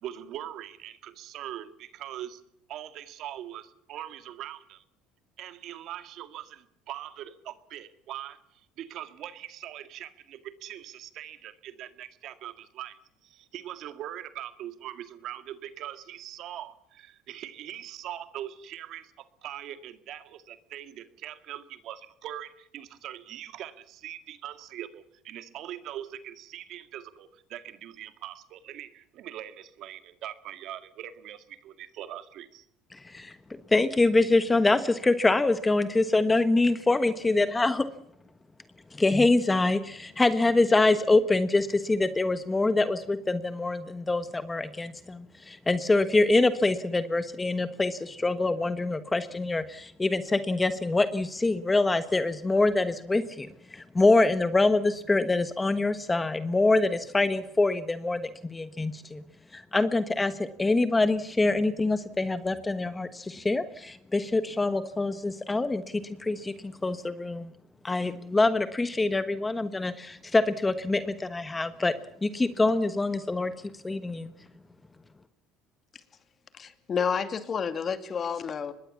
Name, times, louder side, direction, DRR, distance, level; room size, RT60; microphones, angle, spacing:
voice 1, 0.0-2.4 2.7-4.8 5.4-8.4 8.8-32.7, right 12 dB, 60° right, 11 dB, 1.9 m, -41 dB
voice 2, 32.9-33.3 33.7-37.8 38.9-59.2 59.5-67.5 67.8-71.9 72.2-73.5 73.8-74.3, left 2 dB, 15° left, 11 dB, 1.2 m, -25 dB
voice 3, 76.6-78.7, left 6 dB, 35° left, 10 dB, 2.4 m, -30 dB
24.5 x 21.0 x 7.2 m, 0.75 s
supercardioid pair, 105°, 0 cm